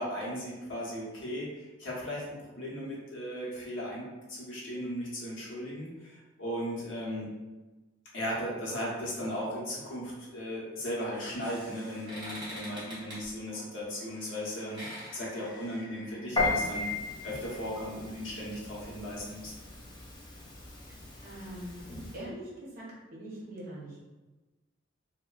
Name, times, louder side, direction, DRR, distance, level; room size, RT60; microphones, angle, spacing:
voice 1, 0.0-7.3 8.1-16.9 17.2-19.5, equal, 70° left, -5 dB, 0.8 m, -37 dB
sound 1, 10.9-16.5, equal, 25° right, 1.0 m, -46 dB
Piano, 16.4-22.2, left 3 dB, 25° left, 0.5 m, -36 dB
voice 2, 21.2-21.8 22.1-22.4 22.8-22.9 23.1-24.0, right 1 dB, 50° right, -5 dB, 0.8 m, -42 dB
2.8 x 2.1 x 2.3 m, 1.2 s
head